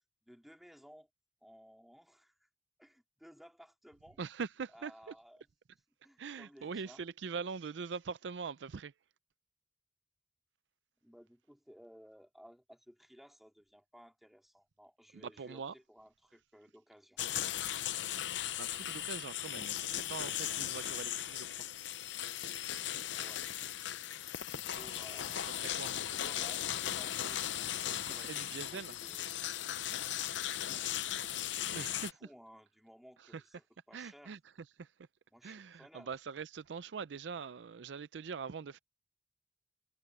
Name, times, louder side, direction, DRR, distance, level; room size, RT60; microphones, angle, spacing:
voice 1, 0.2-1.1 1.4-2.5 2.8-4.2 4.7-7.0 11.0-17.2 23.1-23.4 24.4-28.4 28.7-29.3 30.6-31.4 31.7-34.4 35.3-36.1, equal, ahead, 3.8 m, -58 dB
voice 2, 4.2-5.1 6.2-8.9 15.1-15.7 18.6-21.7 25.5-25.9 28.0-28.9 31.7-32.1 33.9-34.4 34.8-34.9 35.4-38.8, right 5 dB, 75° right, 0.5 m, -43 dB
sound 1, 17.2-32.1, left 11 dB, 85° left, 0.7 m, -37 dB
head